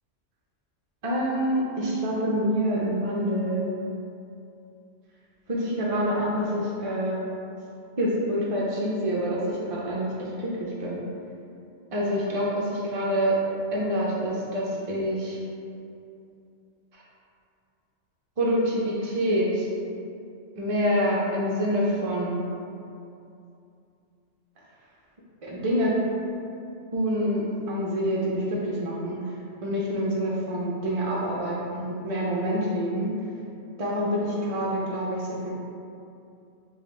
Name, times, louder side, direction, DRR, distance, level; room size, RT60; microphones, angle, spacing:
voice 1, 1.0-3.7 5.5-7.2 8.0-11.0 11.9-13.4 13.7-15.4 18.4-19.7 20.6-22.4 25.4-25.9 26.9-29.2 29.6-33.1 33.8-35.6, equal, 45° right, -5 dB, 0.4 m, -26 dB
6.8 x 2.3 x 3.1 m, 2.6 s
omnidirectional pair, 1.3 m